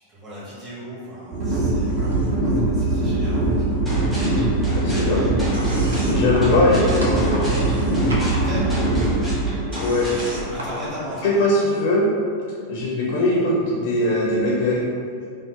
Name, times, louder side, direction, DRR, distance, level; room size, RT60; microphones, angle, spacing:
voice 1, 0.1-3.7 8.2-8.7 10.4-11.3, equal, 25° right, -11 dB, 1.5 m, -36 dB
sound 1, 1.3-11.4, right 2 dB, 50° right, 1.0 m, -22 dB
sound 2, 1.7-2.5 2.8-3.8 4.1-11.6, equal, 70° right, 0.5 m, -36 dB
sound 3, 3.9-10.4, equal, 10° right, 1.0 m, -31 dB
voice 2, 4.7-5.2 5.8-7.7 9.8-10.1 11.2-12.1 12.7-14.9, left 2 dB, 45° left, -4 dB, 0.4 m, -21 dB
3.7 x 2.0 x 2.5 m, 2.3 s
figure-of-eight pair, 90°, 0 cm